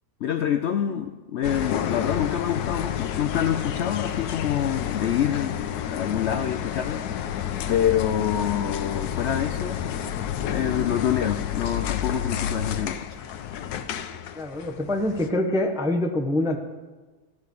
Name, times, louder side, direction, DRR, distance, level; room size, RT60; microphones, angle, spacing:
voice 1, 0.2-5.5 5.9-7.0 7.7-9.8 10.5-13.2, left 9 dB, 70° left, 8 dB, 0.6 m, -26 dB
sound 1, 1.4-15.3, left 9 dB, 85° left, 1.2 m, -30 dB
voice 2, 14.3-16.6, left 1 dB, 5° right, 3 dB, 0.4 m, -25 dB
14.0 x 4.9 x 6.7 m, 1.3 s
omnidirectional pair, 1.6 m